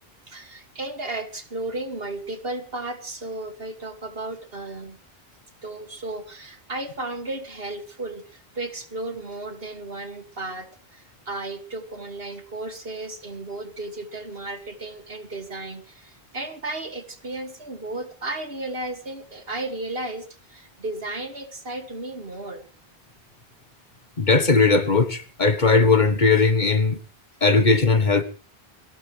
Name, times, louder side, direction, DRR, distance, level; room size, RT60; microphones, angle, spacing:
voice 1, 0.3-5.0 5.6-22.7, right 2 dB, 65° right, 2.6 m, -34 dB
voice 2, 24.2-27.0 27.4-28.2, left 4 dB, 45° left, 1.5 m, -18 dB
22.5 x 17.5 x 3.4 m
omnidirectional pair, 1.1 m